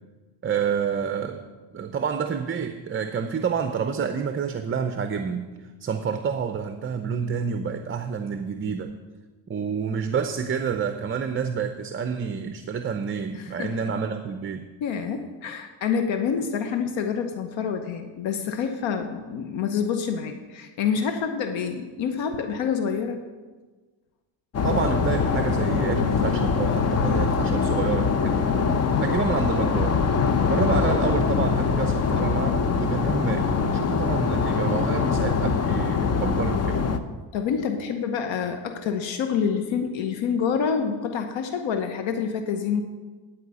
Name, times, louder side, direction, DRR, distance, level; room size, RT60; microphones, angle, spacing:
voice 1, 0.4-1.4 1.7-5.5 5.8-8.9 9.5-14.7 24.6-28.4 29.0-30.0 30.5-36.8, right 6 dB, 25° right, 7 dB, 0.6 m, -28 dB
voice 2, 13.4-13.9 14.8-23.2 30.3-30.7 37.3-42.8, left 6 dB, 75° left, 6 dB, 1.0 m, -27 dB
sound 1, 24.5-37.0, left 5 dB, 35° left, 0.7 m, -23 dB
11.0 x 4.9 x 8.2 m, 1.3 s
cardioid pair, 100°, 47 cm